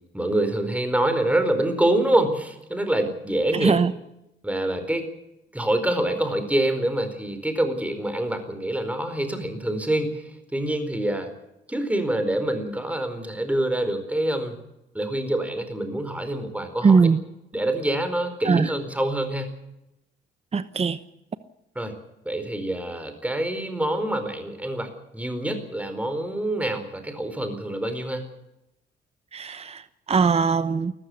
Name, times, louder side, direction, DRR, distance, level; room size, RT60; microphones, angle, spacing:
voice 1, 0.1-3.7 4.4-5.1 5.5-11.3 11.7-14.6 14.9-17.1 17.5-19.5 21.7-22.0 22.2-28.2, right 1 dB, 5° right, 8 dB, 4.6 m, -26 dB
voice 2, 3.5-3.9 16.8-17.2 18.4-18.7 20.5-21.0 29.3-29.8 30.1-30.9, right 5 dB, 30° right, 14 dB, 1.0 m, -20 dB
19.5 x 14.5 x 9.6 m, 0.87 s
cardioid pair, 90°, 20 cm